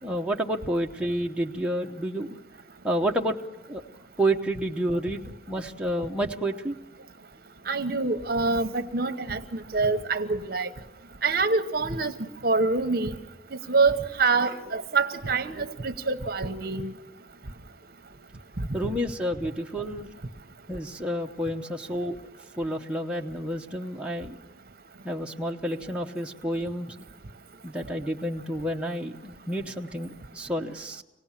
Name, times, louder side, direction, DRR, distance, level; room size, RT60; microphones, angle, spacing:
voice 1, 0.0-2.3 2.8-3.4 3.7-3.8 4.2-6.7 18.7-20.1 20.7-22.2 22.6-24.4 25.0-27.0 27.6-31.0, right 1 dB, 5° right, 0 dB, 0.9 m, -29 dB
voice 2, 7.7-10.7 11.2-12.1 12.4-13.1 13.5-16.9, right 3 dB, 55° right, 10 dB, 1.1 m, -25 dB
26.5 x 18.0 x 7.4 m, 1.0 s
head